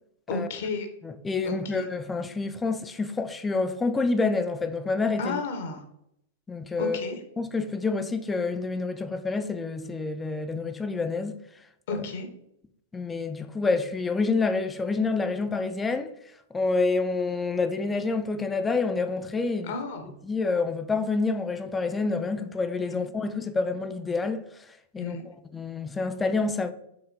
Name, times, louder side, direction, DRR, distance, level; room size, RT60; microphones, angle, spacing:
voice 1, 0.3-0.9 1.4-1.6 5.2-5.8 6.8-7.2 11.9-12.3 19.7-20.1 22.9-23.1 25.0-25.2, left 4 dB, 50° left, 0.7 m, -32 dB
voice 2, 1.0-5.4 6.5-7.0 7.4-11.4 11.9-12.1 12.9-16.1 16.5-19.7 20.2-24.4 24.9-26.7, left 3 dB, 10° left, 0.3 m, -28 dB
4.4 x 3.4 x 2.6 m
figure-of-eight pair, 100°, 0 cm